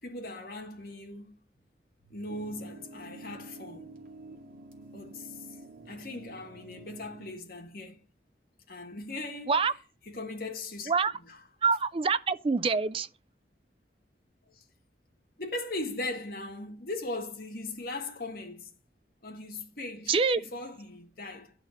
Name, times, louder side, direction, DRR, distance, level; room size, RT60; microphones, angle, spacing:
voice 1, 0.0-1.4 2.0-3.9 4.9-5.5 5.9-8.0 8.7-9.6 10.1-10.9 11.2-11.4 14.5-14.6 15.4-18.7 19.2-21.5, left 2 dB, 55° left, 1.9 m, -39 dB
sound 1, 2.3-7.3, right 2 dB, 50° right, 2.2 m, -49 dB
voice 2, 11.6-13.1 20.1-20.4, right 5 dB, 30° right, 0.4 m, -25 dB
10.5 x 4.2 x 7.0 m
head